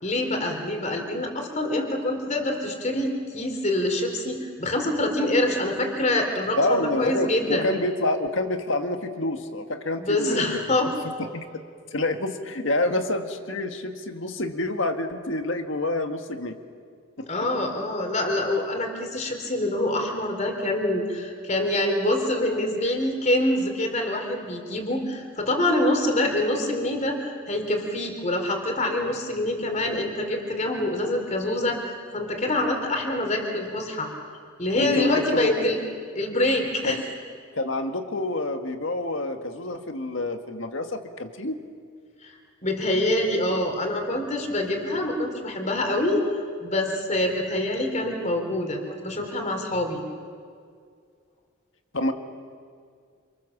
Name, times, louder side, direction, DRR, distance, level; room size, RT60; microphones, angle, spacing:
voice 1, 0.0-7.7 10.0-10.9 17.3-34.1 34.6-35.8 36.1-37.0 42.2-42.3 42.6-46.2 46.6-50.0, left 1 dB, 35° left, 4 dB, 3.7 m, -25 dB
voice 2, 6.6-10.8 11.2-11.4 11.9-16.6 17.2-17.3 34.8-35.7 36.9-37.0 37.5-41.7 51.9-52.1, left 2 dB, 65° left, 6 dB, 1.9 m, -27 dB
27.5 x 26.5 x 7.3 m, 2.2 s
head